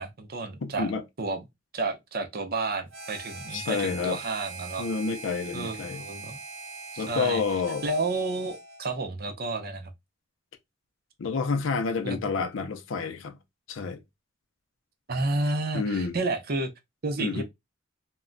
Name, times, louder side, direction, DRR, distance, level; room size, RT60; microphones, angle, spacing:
voice 1, 0.0-0.9 1.2-1.5 1.7-4.8 5.5-6.4 6.9-7.4 7.8-9.9 12.0-12.2 15.1-16.7 17.0-17.4, right 3 dB, 50° right, 0.6 m, -31 dB
voice 2, 0.6-1.0 3.5-4.2 4.8-6.0 7.0-7.8 11.2-13.4 13.7-14.0 15.7-16.2 17.2-17.4, left 4 dB, 70° left, 0.5 m, -29 dB
Harmonica, 2.9-8.9, right 3 dB, 85° right, 0.9 m, -41 dB
2.2 x 2.1 x 3.7 m
head